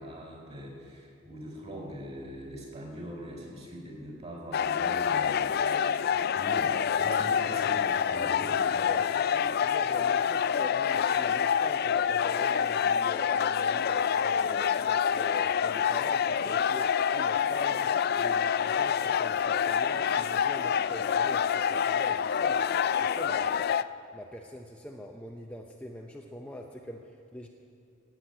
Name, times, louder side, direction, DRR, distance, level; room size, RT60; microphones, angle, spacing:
voice 1, 0.0-5.8 6.1-8.9, equal, 30° right, -1 dB, 4.4 m, -42 dB
sound 1, 4.5-23.8, left 7 dB, 50° left, 0.3 m, -27 dB
voice 2, 7.5-7.9 8.2-17.9 18.2-22.7 23.0-23.6 24.1-27.5, equal, 5° left, 0 dB, 0.7 m, -44 dB
18.0 x 7.9 x 9.1 m, 2.4 s
head